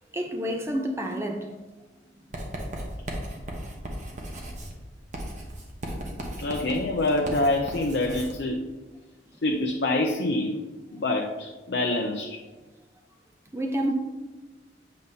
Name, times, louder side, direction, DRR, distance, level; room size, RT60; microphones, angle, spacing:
voice 1, 0.1-1.5 2.1-2.3 13.5-13.9, equal, 15° right, 0.6 m, -29 dB
Writing, 2.3-8.4, right 1 dB, 40° right, 1.0 m, -36 dB
voice 2, 6.4-8.7 9.4-10.6 10.9-12.4 13.8-13.9, left 2 dB, 60° left, 0.5 m, -26 dB
7.5 x 5.4 x 2.8 m
head